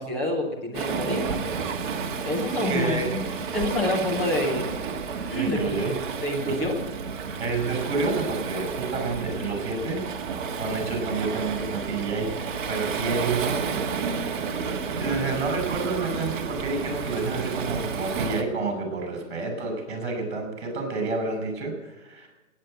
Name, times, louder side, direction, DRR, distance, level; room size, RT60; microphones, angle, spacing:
voice 1, 0.0-1.4 2.2-4.7 5.3-5.6 6.2-6.8, left 1 dB, 5° left, -2 dB, 0.5 m, -27 dB
Waves surf, 0.7-18.4, right 5 dB, 40° right, 1.7 m, -31 dB
voice 2, 2.5-3.3 5.3-6.2 7.4-10.1 10.5-13.6 14.6-22.3, right 3 dB, 55° right, 6 dB, 6.0 m, -29 dB
18.0 x 9.1 x 7.6 m, 1.1 s
hypercardioid pair, 155°, 39 cm